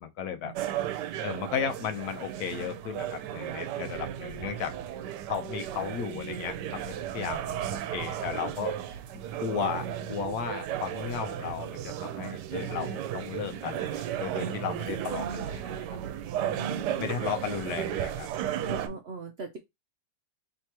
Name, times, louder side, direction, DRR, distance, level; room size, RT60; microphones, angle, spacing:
voice 1, 0.0-0.5 1.2-4.7 5.3-8.7 9.4-15.7 17.0-18.3, left 8 dB, 70° left, 1.1 m, -35 dB
sound 1, 0.6-18.9, right 10 dB, 85° right, 1.2 m, -34 dB
voice 2, 14.6-15.5 16.4-17.3 18.6-19.6, right 3 dB, 70° right, 0.6 m, -40 dB
3.3 x 2.9 x 4.5 m
omnidirectional pair, 1.8 m